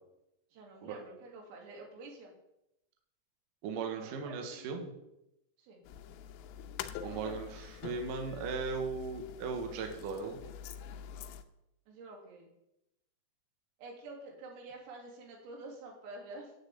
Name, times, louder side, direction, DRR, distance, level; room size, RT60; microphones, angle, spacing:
voice 1, 0.5-2.3 4.0-4.6 5.6-5.8 7.0-7.5 11.9-12.5 13.8-16.5, right 2 dB, 85° right, 0 dB, 5.5 m, -48 dB
voice 2, 3.6-4.9 7.0-10.4, right 5 dB, 60° right, 3 dB, 2.5 m, -37 dB
sound 1, 5.9-11.4, left 9 dB, 85° left, 3.3 m, -45 dB
10.5 x 8.0 x 8.6 m, 0.87 s
omnidirectional pair, 5.8 m